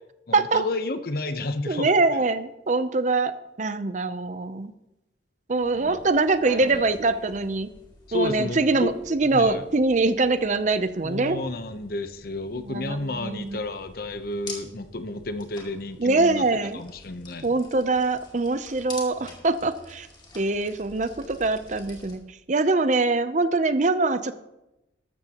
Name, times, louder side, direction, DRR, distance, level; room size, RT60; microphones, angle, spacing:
voice 1, 0.3-2.3 5.7-6.0 6.6-6.8 8.1-8.9 9.3-9.6 11.0-16.5 16.7-17.5, left 2 dB, 55° left, 9 dB, 0.9 m, -31 dB
voice 2, 1.7-3.3 3.6-4.7 5.5-7.7 8.1-11.4 12.6-13.6 16.0-16.8 17.4-20.1 20.3-22.2 22.5-24.3, right 3 dB, 40° right, 11 dB, 0.6 m, -23 dB
sound 1, 5.5-22.2, left 2 dB, 25° left, 2.3 m, -47 dB
13.5 x 12.5 x 3.0 m, 0.91 s
head